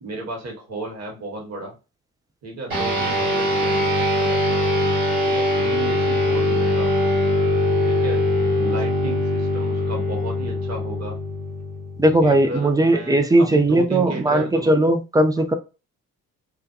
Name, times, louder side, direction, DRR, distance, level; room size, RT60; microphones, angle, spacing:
voice 1, 0.0-1.7 2.4-4.5 5.2-7.1 7.8-8.2 8.6-11.2 12.2-14.7, right 2 dB, 35° right, 0 dB, 1.3 m, -34 dB
sound 1, 2.7-12.5, left 1 dB, 80° right, 1.2 m, -22 dB
voice 2, 12.0-15.5, right 1 dB, 10° right, 8 dB, 0.4 m, -18 dB
2.5 x 2.2 x 2.7 m, 0.30 s
figure-of-eight pair, 40°, 43 cm